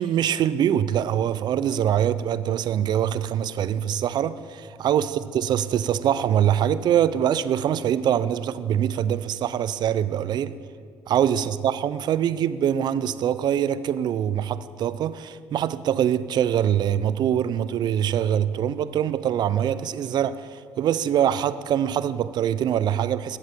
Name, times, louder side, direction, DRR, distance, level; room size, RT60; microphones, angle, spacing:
voice 1, 0.0-10.6 11.1-23.4, right 10 dB, 55° right, 0.5 m, -24 dB
10.5 x 7.7 x 7.3 m
supercardioid pair, 80°, 9 cm